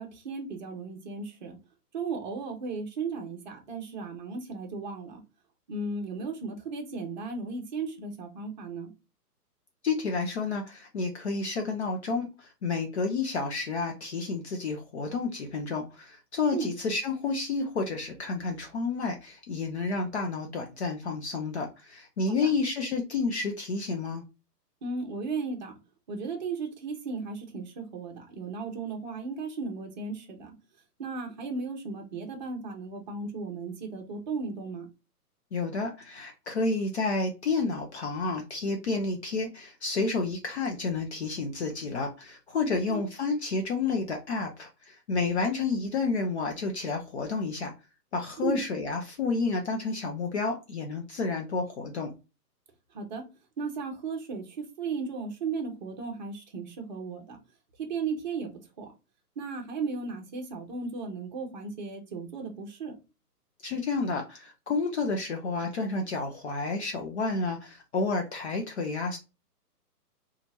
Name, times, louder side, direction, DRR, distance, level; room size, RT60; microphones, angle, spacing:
voice 1, 0.0-1.6 1.9-5.2 5.7-8.9 16.5-16.7 22.4-22.5 24.8-25.7 26.1-30.5 31.0-34.9 42.7-43.0 48.4-48.6 52.9-53.3 53.6-57.4 57.8-58.5 58.8-58.9 59.4-63.0, right 4 dB, 30° right, 0.8 m, -35 dB
voice 2, 9.8-24.2 35.5-47.7 48.1-52.1 63.6-69.2, left 4 dB, 45° left, 0.6 m, -30 dB
3.0 x 2.4 x 4.0 m
hypercardioid pair, 150°, 47 cm